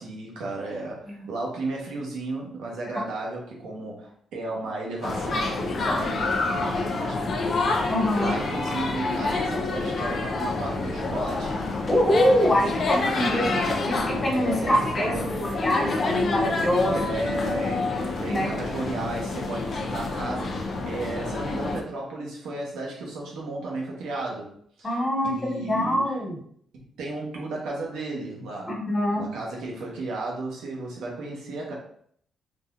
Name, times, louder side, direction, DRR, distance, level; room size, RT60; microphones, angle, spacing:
voice 1, 0.0-7.6 8.2-11.6 12.4-12.6 13.3-13.6 14.3-15.4 16.9-24.5 24.8-24.9 25.2-26.0 26.7-28.8 29.1-31.7, right 2 dB, 85° right, -2 dB, 1.0 m, -34 dB
sound 1, 5.0-21.8, left 3 dB, 55° left, 0.6 m, -28 dB
voice 2, 7.9-8.3 11.9-15.1 15.4-17.0 18.3-18.5 24.8-26.4 28.7-29.2, equal, 25° left, -3 dB, 1.5 m, -24 dB
3.9 x 2.9 x 2.4 m, 0.63 s
supercardioid pair, 70°, 0 cm